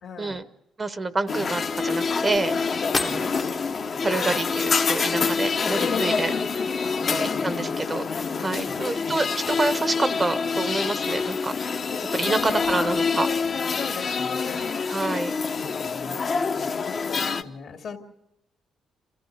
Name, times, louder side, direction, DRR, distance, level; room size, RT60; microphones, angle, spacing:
voice 1, 0.0-0.5 2.9-3.3 6.9-7.7 8.5-8.9 12.2-13.0 13.8-14.6 15.8-18.0, left 5 dB, 65° left, 4 dB, 2.5 m, -39 dB
voice 2, 0.8-2.6 3.0-3.3 4.0-6.3 7.1-8.1 8.4-11.5 12.1-13.3 14.9-15.3, right 3 dB, 25° right, 12 dB, 0.9 m, -27 dB
sound 1, 1.3-17.4, left 5 dB, 50° left, 1.1 m, -26 dB
sound 2, 2.4-2.5 2.9-3.9, left 3 dB, 25° left, 0.9 m, -30 dB
27.5 x 14.5 x 6.6 m, 0.90 s
cardioid pair, 90°, 0 cm